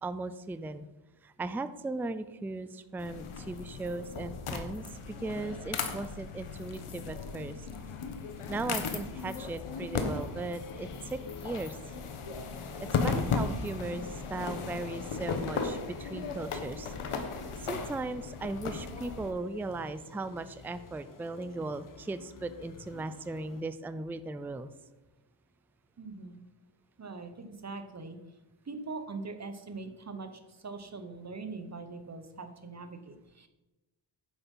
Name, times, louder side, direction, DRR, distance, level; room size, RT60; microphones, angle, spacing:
voice 1, 0.0-0.9 1.2-7.7 8.5-11.9 12.8-17.2 17.6-24.7, right 2 dB, 5° right, 12 dB, 0.3 m, -38 dB
sound 1, 3.0-19.3, left 5 dB, 85° left, 1.4 m, -36 dB
sound 2, 7.6-23.6, left 4 dB, 40° left, 1.0 m, -52 dB
voice 2, 26.0-26.4 27.0-28.2 28.6-33.5, right 3 dB, 35° right, 8 dB, 1.1 m, -42 dB
10.0 x 7.9 x 5.5 m, 1.0 s
wide cardioid pair, 145°, 49 cm